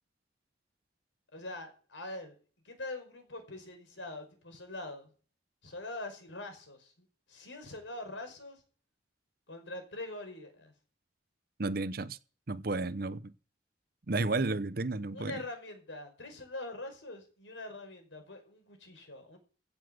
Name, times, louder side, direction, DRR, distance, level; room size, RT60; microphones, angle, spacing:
voice 1, 1.3-2.4 2.6-5.1 5.6-8.6 9.5-10.7 15.1-19.4, left 2 dB, 85° left, 5.3 m, -43 dB
voice 2, 11.6-12.2 12.5-13.3 14.1-15.4, right 3 dB, 50° right, 0.8 m, -32 dB
16.0 x 7.3 x 7.9 m
head